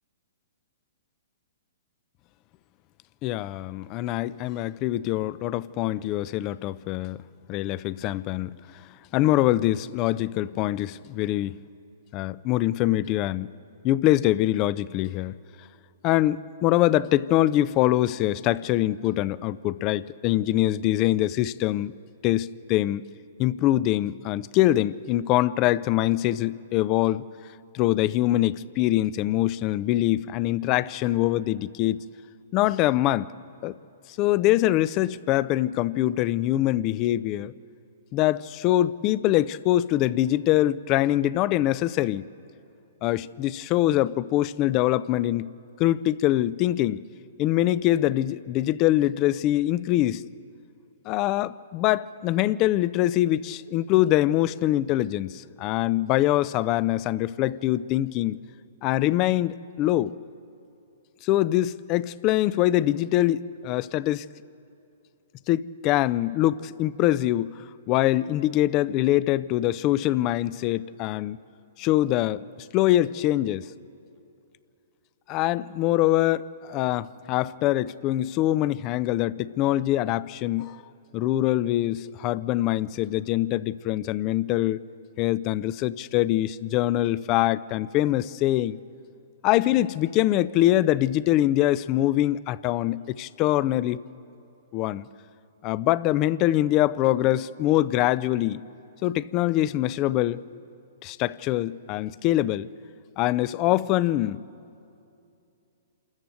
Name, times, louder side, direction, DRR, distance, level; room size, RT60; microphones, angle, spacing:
voice 1, 3.2-7.2 7.5-8.5 9.1-11.6 12.1-13.5 13.8-15.3 16.0-21.9 22.2-23.0 23.4-27.2 27.7-32.0 32.5-33.3 33.6-33.8 34.2-37.5 38.1-42.2 43.0-45.5 45.8-47.0 47.4-50.2 51.1-58.4 58.8-60.1 61.2-64.3 65.5-67.6 67.9-71.4 71.8-72.4 72.7-73.7 75.3-80.8 81.1-84.8 85.2-88.8 89.4-94.0 94.7-95.1 95.6-98.6 99.0-100.4 101.0-102.7 103.2-104.4, left 14 dB, 35° left, 0.5 m, -24 dB
27.5 x 14.0 x 7.7 m
hypercardioid pair, 125°, 0 cm